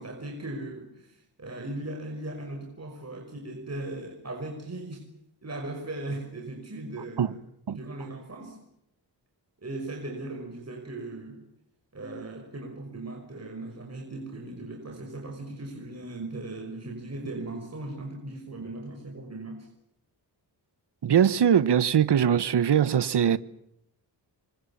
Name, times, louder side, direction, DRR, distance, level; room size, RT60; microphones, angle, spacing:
voice 1, 0.0-5.1 5.4-7.4 7.7-8.6 9.6-11.4 11.9-19.7, right 2 dB, 35° right, 5.9 m, -38 dB
voice 2, 21.0-23.4, right 8 dB, 70° right, 1.2 m, -21 dB
28.0 x 25.5 x 7.3 m
wide cardioid pair, 90°, 42 cm